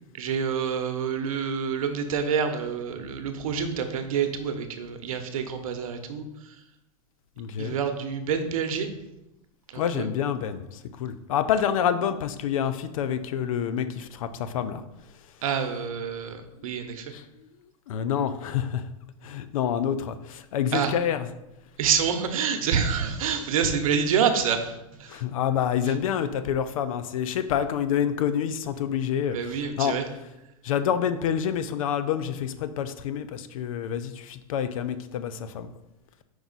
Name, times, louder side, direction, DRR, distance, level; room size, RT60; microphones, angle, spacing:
voice 1, 0.1-6.5 7.6-8.9 9.7-10.1 15.4-17.1 20.7-20.9 21.8-25.2 25.9-26.0 29.3-30.0, right 7 dB, 70° right, 7 dB, 0.9 m, -27 dB
voice 2, 7.4-7.8 9.7-14.8 16.6-16.7 17.1-17.2 17.9-18.8 19.2-21.3 25.1-29.4 29.8-30.0 30.6-35.7, left 9 dB, 70° left, 11 dB, 0.5 m, -27 dB
5.1 x 4.7 x 4.0 m, 0.93 s
hypercardioid pair, 115°, 18 cm